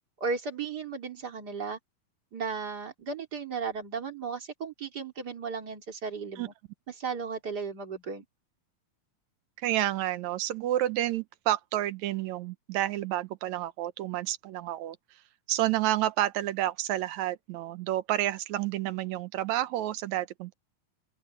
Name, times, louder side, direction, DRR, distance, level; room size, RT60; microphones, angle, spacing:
voice 1, 0.2-1.8 2.3-6.5 6.9-8.2, right 5 dB, 30° right, 3.1 m, -35 dB
voice 2, 9.6-15.0 15.5-20.5, right 13 dB, 75° right, 1.8 m, -30 dB
open air
omnidirectional pair, 4.1 m